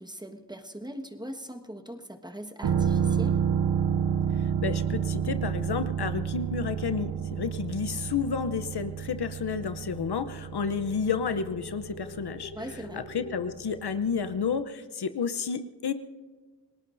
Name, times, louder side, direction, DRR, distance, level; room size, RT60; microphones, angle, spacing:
voice 1, 0.0-3.4 12.5-13.0, equal, 10° right, 4 dB, 1.5 m, -40 dB
sound 1, 2.6-14.2 14.5-14.6, right 7 dB, 70° right, 0.8 m, -30 dB
voice 2, 4.3-12.5 12.9-15.9, left 6 dB, 65° left, 10 dB, 0.8 m, -31 dB
sound 2, 8.7-13.6, left 4 dB, 85° left, 4.8 m, -47 dB
29.5 x 18.5 x 2.7 m, 1.4 s
cardioid pair, 50°, 42 cm